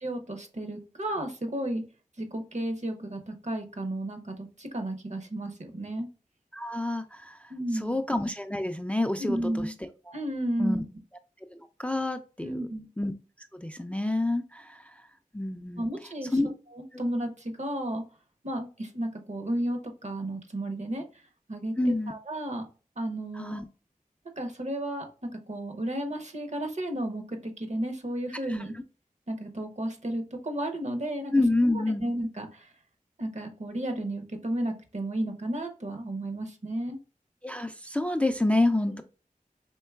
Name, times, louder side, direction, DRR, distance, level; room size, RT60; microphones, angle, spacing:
voice 1, 0.0-1.8 2.2-6.1 7.5-8.0 9.2-9.7 10.1-10.8 12.4-12.9 15.8-16.4 16.7-18.0 18.4-21.0 21.5-22.6 23.0-23.5 24.4-28.7 29.3-31.3 31.7-32.7 33.2-37.0, right 1 dB, 55° right, 4 dB, 0.8 m, -33 dB
voice 2, 6.5-10.2 10.6-10.8 11.5-12.6 13.0-13.1 13.6-14.9 15.3-15.9 16.3-16.5 16.9-17.0 21.8-22.1 23.4-23.6 28.5-28.7 31.3-32.0 37.4-39.0, left 2 dB, 10° left, 7 dB, 0.3 m, -28 dB
4.5 x 3.1 x 2.3 m, 0.35 s
wide cardioid pair, 55°, 15 cm